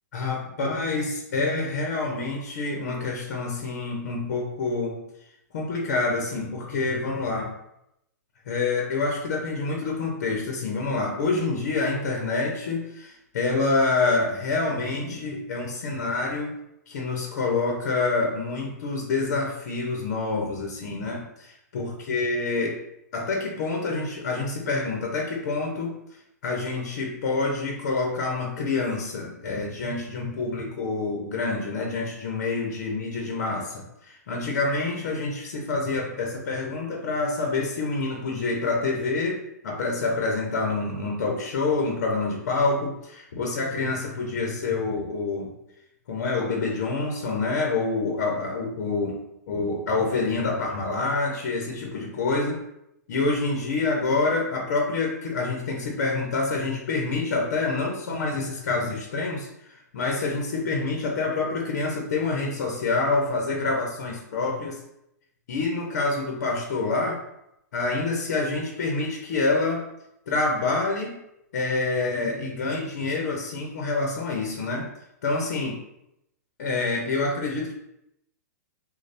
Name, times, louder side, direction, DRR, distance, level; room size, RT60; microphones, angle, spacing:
voice 1, 0.1-5.0 5.5-7.5 8.5-16.6 16.9-22.8 23.1-26.0 26.4-45.5 46.1-49.2 49.5-52.6 53.1-64.8 65.5-67.2 67.7-69.8 70.3-71.2 71.5-74.9 75.2-75.7 76.6-77.7, left 3 dB, 60° left, 0 dB, 0.8 m, -27 dB
3.2 x 2.3 x 4.1 m, 0.82 s
hypercardioid pair, 145°, 9 cm